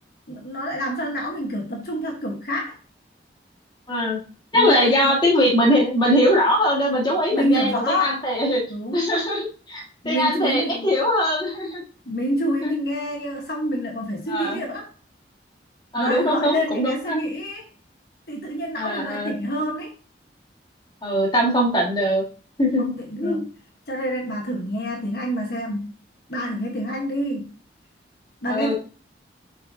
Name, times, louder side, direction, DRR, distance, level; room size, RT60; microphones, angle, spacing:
voice 1, 0.3-2.7 4.5-5.2 7.3-8.2 8.7-9.1 10.0-10.9 12.0-14.9 16.0-17.7 18.3-19.9 22.8-23.5 23.9-25.9 26.3-27.5 28.4-28.7, equal, 55° left, 1 dB, 1.3 m, -27 dB
voice 2, 3.9-4.2 4.5-8.6 8.9-11.8 12.6-12.8 14.3-14.6 15.9-17.2 18.8-19.3 21.0-22.2 22.6-22.9 23.2-23.4 28.5-28.7, equal, 25° left, -1 dB, 1.8 m, -21 dB
7.6 x 5.5 x 2.8 m, 0.37 s
head